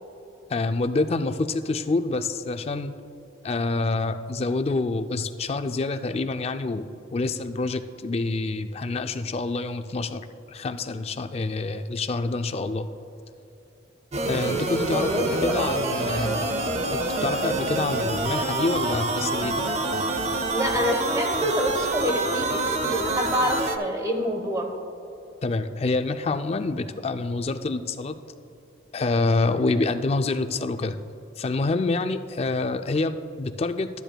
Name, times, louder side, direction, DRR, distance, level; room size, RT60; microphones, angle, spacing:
voice 1, 0.5-2.9 3.4-6.8 7.1-10.2 10.5-12.9 14.3-16.5 17.2-19.6 25.4-28.2 28.9-31.0 31.4-33.9, left 3 dB, 30° left, 9 dB, 0.3 m, -27 dB
sound 1, 14.1-23.8, right 2 dB, 35° right, 0.6 m, -26 dB
voice 2, 14.8-15.7 20.5-24.7, equal, 15° right, 3 dB, 1.0 m, -27 dB
13.5 x 10.0 x 2.2 m, 3.0 s
head